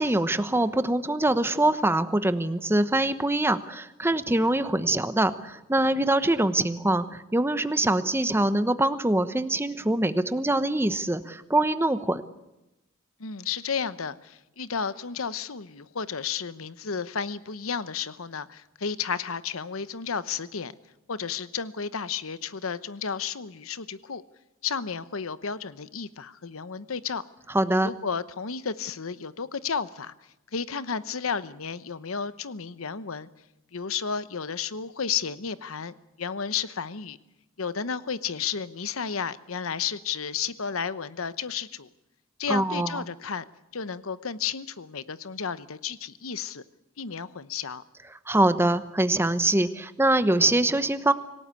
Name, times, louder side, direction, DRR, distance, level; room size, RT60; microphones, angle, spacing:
voice 1, 0.0-12.2 27.5-27.9 42.5-43.0 48.3-51.1, right 1 dB, 10° right, 12 dB, 1.0 m, -24 dB
voice 2, 13.2-20.7 21.1-24.2 24.6-27.2 27.8-30.1 30.5-33.3 33.7-37.2 37.6-41.9 42.4-43.4 43.7-46.6 47.0-47.8, left 6 dB, 80° left, 14 dB, 0.9 m, -32 dB
26.0 x 17.5 x 8.4 m, 0.93 s
head